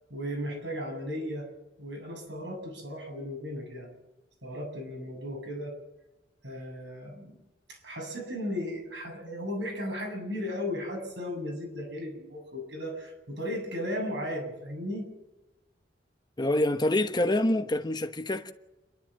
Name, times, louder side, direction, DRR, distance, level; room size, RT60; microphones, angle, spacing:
voice 1, 0.1-1.5 1.8-3.9 4.4-5.7 6.4-7.4 7.7-15.1, equal, 75° right, 7.9 m, -35 dB
voice 2, 16.4-18.5, left 1 dB, 25° left, 1.2 m, -26 dB
29.0 x 12.5 x 7.6 m
head